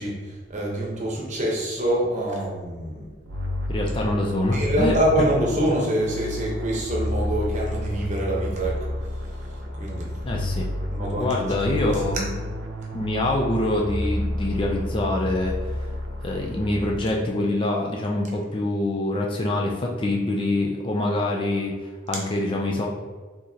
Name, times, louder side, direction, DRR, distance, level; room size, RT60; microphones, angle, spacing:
voice 1, 0.0-3.1 4.5-10.4 10.9-11.4, right 1 dB, 35° right, -3 dB, 0.9 m, -26 dB
sound 1, 3.3-17.4, left 1 dB, 70° right, 0.6 m, -30 dB
voice 2, 3.7-5.0 5.6-5.7 10.2-10.7 11.2-12.3 12.9-15.9 16.2-21.7 22.1-22.9, left 1 dB, 25° left, -1 dB, 0.4 m, -25 dB
4.7 x 3.7 x 2.8 m, 1.4 s
head